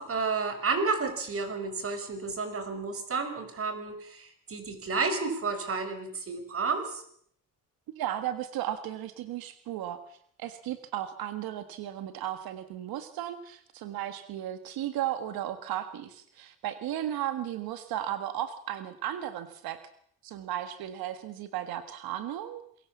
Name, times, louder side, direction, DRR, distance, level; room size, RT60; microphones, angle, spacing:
voice 1, 0.0-7.0, right 4 dB, 40° right, 8 dB, 5.5 m, -31 dB
voice 2, 7.9-19.8 20.2-22.6, right 12 dB, 85° right, 10 dB, 1.8 m, -35 dB
27.0 x 22.5 x 7.2 m, 0.65 s
cardioid pair, 120°, 35 cm